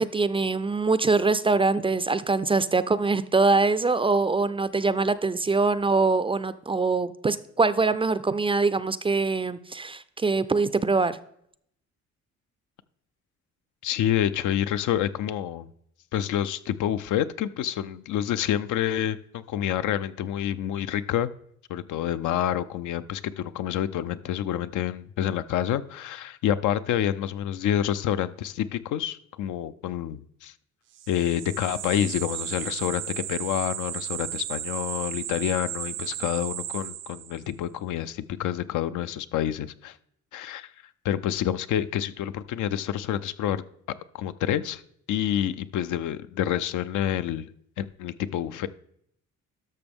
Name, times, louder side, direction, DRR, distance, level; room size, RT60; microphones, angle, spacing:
voice 1, 0.0-11.2, right 3 dB, 20° right, 0.3 m, -23 dB
voice 2, 13.8-15.7 16.1-21.3 21.7-30.5 31.1-40.0 40.3-40.7 41.0-43.6 44.1-44.8 45.1-47.5 47.8-48.7, left 11 dB, 80° left, 0.5 m, -28 dB
sound 1, 31.0-37.5, right 12 dB, 90° right, 0.7 m, -35 dB
12.0 x 6.0 x 3.5 m
cardioid pair, 90°, 30 cm